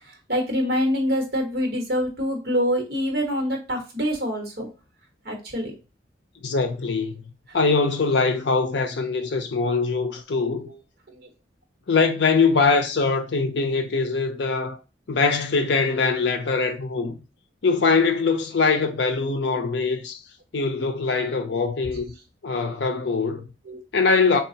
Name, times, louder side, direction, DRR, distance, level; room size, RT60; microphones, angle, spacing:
voice 1, 0.1-4.7 5.2-5.7 11.1-11.2 18.8-18.9 23.6-23.8, equal, 55° right, 1.2 m, -25 dB
voice 2, 6.4-7.2 7.5-10.7 11.9-14.8 15.1-17.2 17.6-20.2 20.5-22.1 22.4-23.5 23.9-24.4, left 4 dB, 70° left, 0.6 m, -22 dB
4.1 x 2.3 x 2.7 m
head